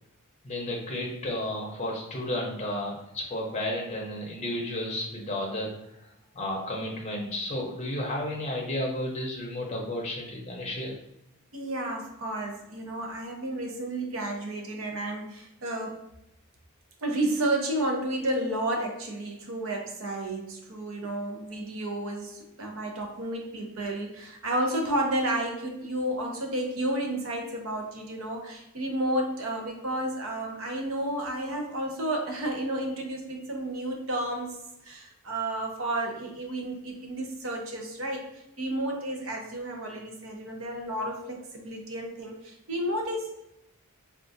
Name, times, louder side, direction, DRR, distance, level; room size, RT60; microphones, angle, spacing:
voice 1, 0.4-5.7 6.3-11.0, left 1 dB, 30° left, -1 dB, 0.6 m, -32 dB
voice 2, 11.5-16.0 17.0-34.6 34.8-38.2 38.6-43.5, right 1 dB, 60° right, 1 dB, 0.7 m, -31 dB
3.6 x 2.4 x 2.6 m, 0.85 s
head